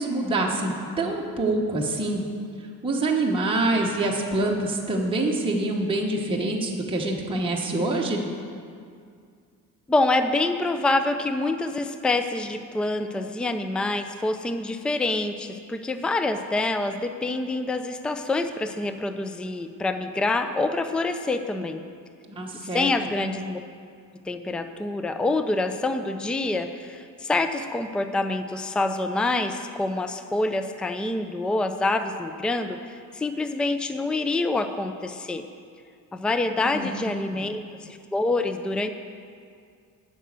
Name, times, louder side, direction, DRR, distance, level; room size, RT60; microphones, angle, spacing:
voice 1, 0.0-2.2 2.6-8.2 22.3-22.9 36.6-37.4, right 2 dB, 15° right, -2 dB, 1.0 m, -26 dB
voice 2, 9.9-21.8 22.7-23.6 24.3-35.5 36.1-38.9, left 2 dB, 5° left, 9 dB, 0.4 m, -26 dB
9.0 x 6.2 x 8.1 m, 2.3 s
cardioid pair, 130°, 34 cm